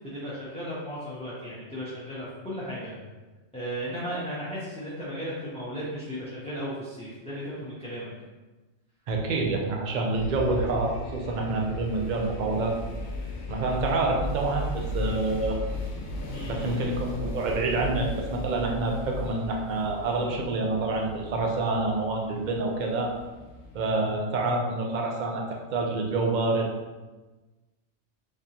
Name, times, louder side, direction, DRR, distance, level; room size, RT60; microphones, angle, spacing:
voice 1, 0.0-3.0 3.5-8.1 16.3-16.8, equal, 5° left, -9 dB, 0.6 m, -35 dB
voice 2, 9.1-12.8 13.5-15.6 16.4-23.1 23.7-25.4 25.7-26.7, right 2 dB, 50° right, 0 dB, 0.5 m, -27 dB
sound 1, 10.1-24.1, left 1 dB, 65° left, 0.9 m, -36 dB
3.6 x 3.5 x 2.8 m, 1.2 s
omnidirectional pair, 1.4 m